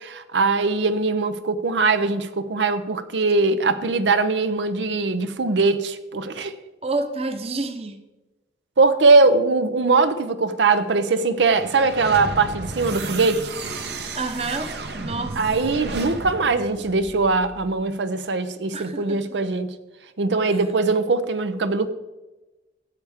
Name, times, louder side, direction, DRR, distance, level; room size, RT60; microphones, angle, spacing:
voice 1, 0.0-6.5 8.8-13.5 15.4-19.7 20.2-21.9, right 3 dB, 85° right, 11 dB, 0.7 m, -21 dB
voice 2, 6.8-8.0 14.1-15.4 15.8-15.9 18.7-19.0, right 3 dB, 35° right, 8 dB, 0.9 m, -29 dB
sound 1, 11.5-17.7, right 3 dB, 70° right, 1.0 m, -33 dB
14.0 x 7.9 x 3.5 m, 1.1 s
head